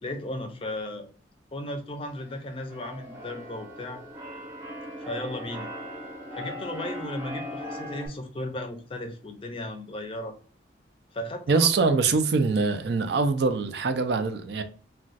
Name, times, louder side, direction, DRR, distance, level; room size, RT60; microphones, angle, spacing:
voice 1, 0.0-1.1 1.5-4.0 5.0-5.7 6.4-10.4 11.1-11.7, left 1 dB, 30° left, 0.4 m, -35 dB
Keyboard (musical), 2.2-8.1, equal, 15° right, 0.7 m, -39 dB
voice 2, 11.5-14.6, right 4 dB, 65° right, 0.4 m, -23 dB
2.4 x 2.2 x 3.9 m
head